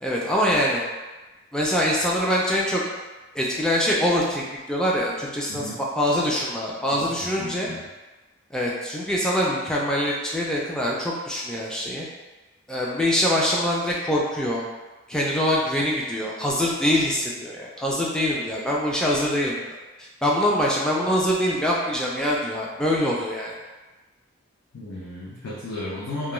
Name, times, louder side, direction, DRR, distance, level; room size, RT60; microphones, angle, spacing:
voice 1, 0.0-0.8 1.5-2.8 3.3-7.7 8.5-12.1 12.7-14.6 15.1-19.6 20.2-23.5, equal, 5° left, -4 dB, 0.4 m, -24 dB
voice 2, 7.4-7.8 24.7-26.3, left 2 dB, 80° left, -8 dB, 0.5 m, -34 dB
2.2 x 2.2 x 3.0 m, 1.2 s
head